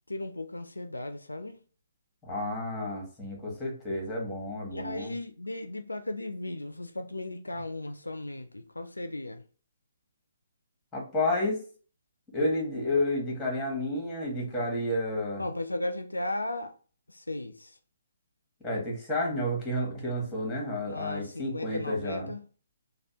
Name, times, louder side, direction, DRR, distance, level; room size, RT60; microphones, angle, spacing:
voice 1, 0.1-1.6 4.7-9.4 15.4-16.7 17.1-17.8 20.8-22.4, left 1 dB, 85° left, 0.3 m, -36 dB
voice 2, 2.2-5.1 10.9-11.6 12.3-15.4 18.6-22.3, left 1 dB, 10° left, 1.3 m, -31 dB
3.3 x 2.1 x 2.8 m
figure-of-eight pair, 130°, 0 cm